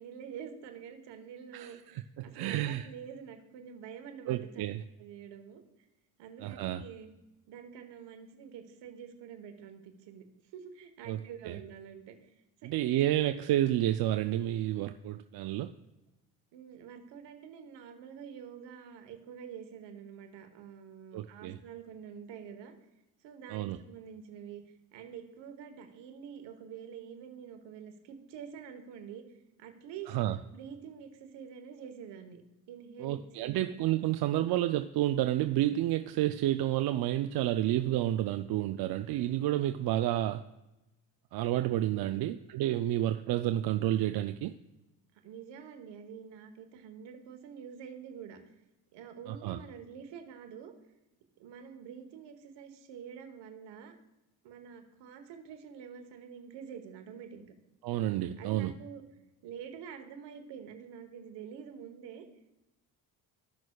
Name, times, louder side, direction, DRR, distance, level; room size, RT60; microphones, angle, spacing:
voice 1, 0.0-4.7 5.0-5.6 6.2-7.1 7.5-10.3 10.5-12.3 12.6-12.8 13.1-13.2 16.5-22.7 23.2-24.6 24.9-29.2 29.6-30.2 30.5-32.4 32.7-33.7 41.9-42.4 43.1-43.2 45.2-48.4 48.9-50.7 51.4-53.9 54.4-57.5 58.4-59.0 59.4-62.2, right 7 dB, 80° right, 7 dB, 1.2 m, -47 dB
voice 2, 1.5-2.9 4.3-4.8 6.4-6.8 11.1-11.2 11.5-11.6 12.6-15.7 21.1-21.6 23.5-23.8 30.1-30.4 33.0-40.4 41.3-44.5 49.3-49.6 57.8-58.7, right 13 dB, 60° right, 8 dB, 0.5 m, -30 dB
15.5 x 6.1 x 2.3 m, 0.98 s
supercardioid pair, 70°, 42 cm